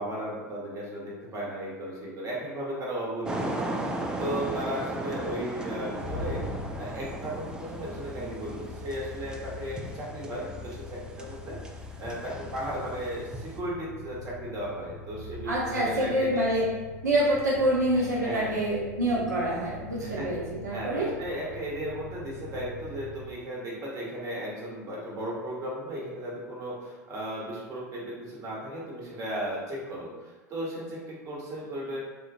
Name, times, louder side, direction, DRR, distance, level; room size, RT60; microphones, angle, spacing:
voice 1, 0.0-3.7 4.2-6.4 6.8-11.6 12.0-16.4 17.9-18.6 20.0-20.3 20.7-32.0, right 1 dB, 40° right, -5 dB, 1.2 m, -35 dB
sound 1, 3.3-13.6, right 1 dB, 10° right, 0.4 m, -37 dB
sound 2, 5.7-23.3, left 3 dB, 65° left, 0.5 m, -43 dB
voice 2, 15.5-16.7 17.0-21.1, right 1 dB, 85° right, -5 dB, 0.5 m, -26 dB
3.6 x 2.4 x 2.4 m, 1.3 s
figure-of-eight pair, 80°, 9 cm